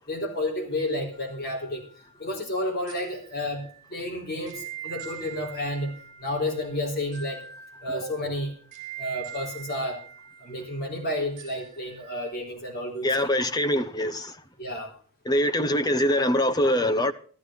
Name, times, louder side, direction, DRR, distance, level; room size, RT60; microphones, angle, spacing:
voice 1, 0.1-1.9 2.2-7.4 7.8-8.5 9.0-10.0 10.4-13.5 14.6-14.9, left 1 dB, 45° left, 3.8 m, -31 dB
sound 1, 1.1-12.3, right 9 dB, 35° right, 3.6 m, -44 dB
voice 2, 13.0-14.4 15.3-17.1, left 1 dB, 20° left, 0.9 m, -23 dB
14.0 x 13.5 x 3.8 m
head